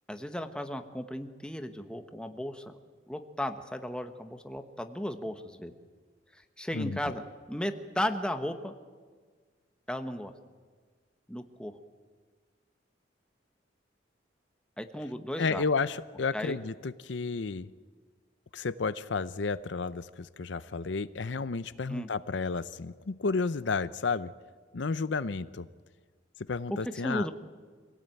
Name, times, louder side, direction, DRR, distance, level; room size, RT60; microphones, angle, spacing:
voice 1, 0.1-2.7 3.1-5.7 6.6-7.2 7.5-8.7 9.9-10.3 11.3-11.8 14.8-15.6 16.3-16.6 21.9-22.1 27.0-27.3, left 1 dB, 5° left, 7 dB, 1.3 m, -35 dB
voice 2, 6.7-7.1 15.4-17.7 18.5-24.3 24.7-25.7 26.5-27.3, left 4 dB, 70° left, 14 dB, 0.6 m, -32 dB
25.5 x 17.0 x 9.2 m, 1.5 s
head